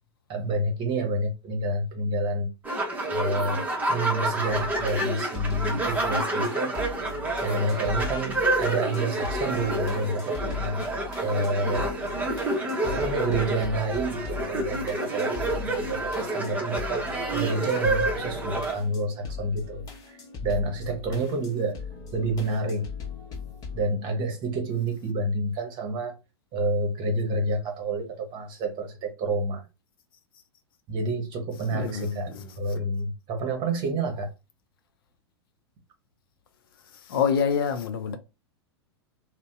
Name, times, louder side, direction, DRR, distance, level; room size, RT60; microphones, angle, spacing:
voice 1, 0.3-2.5 3.0-6.7 7.4-10.8 11.2-11.9 12.8-21.8 22.1-22.9 23.7-26.2 26.5-29.6 30.9-34.3, right 2 dB, 35° right, 1.0 m, -29 dB
sound 1, 2.6-18.7, right 2 dB, 10° right, 0.8 m, -29 dB
sound 2, 4.4-23.8, left 5 dB, 25° left, 1.0 m, -39 dB
voice 2, 31.7-32.8 36.9-38.2, left 7 dB, 55° left, 0.6 m, -27 dB
2.6 x 2.2 x 3.5 m
figure-of-eight pair, 95°, 14 cm